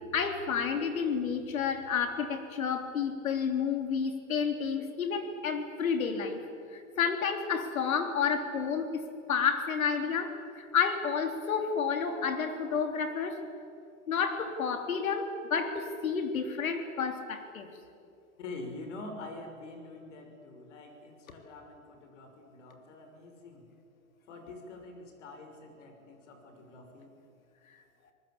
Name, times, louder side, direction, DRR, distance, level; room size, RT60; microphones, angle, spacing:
voice 1, 0.0-6.5 6.7-13.4 14.1-17.7, left 6 dB, 80° left, 6 dB, 3.5 m, -30 dB
voice 2, 18.4-23.7 24.3-27.1, left 2 dB, 60° left, 4 dB, 5.9 m, -46 dB
25.5 x 19.5 x 8.7 m, 2.5 s
hypercardioid pair, 145°, 41 cm